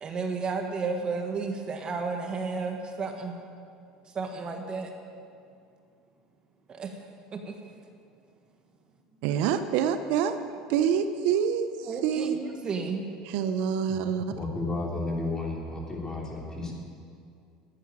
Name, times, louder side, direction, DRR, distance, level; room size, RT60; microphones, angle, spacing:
voice 1, 0.0-3.3 4.1-4.9 6.7-6.9 7.3-7.6 11.8-13.1, right 4 dB, 35° right, 4 dB, 1.5 m, -32 dB
voice 2, 9.2-10.4 10.7-12.4 13.2-14.2, right 8 dB, 70° right, 10 dB, 0.7 m, -26 dB
voice 3, 14.3-16.7, left 2 dB, 20° left, -2 dB, 3.5 m, -32 dB
11.0 x 9.4 x 8.9 m, 2.4 s
supercardioid pair, 100°, 3 cm